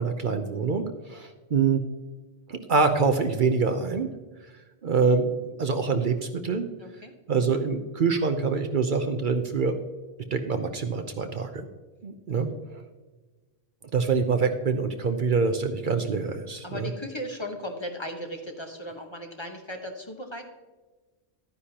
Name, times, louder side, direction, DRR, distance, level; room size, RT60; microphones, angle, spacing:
voice 1, 0.0-1.8 2.5-4.1 4.8-6.7 7.3-9.8 10.3-11.7 12.0-12.8 13.9-16.9, right 5 dB, 55° right, 7 dB, 0.8 m, -25 dB
voice 2, 6.8-7.1 12.3-12.6 16.6-20.4, left 1 dB, 25° left, 3 dB, 1.1 m, -37 dB
12.0 x 9.8 x 2.8 m, 1.3 s
omnidirectional pair, 1.1 m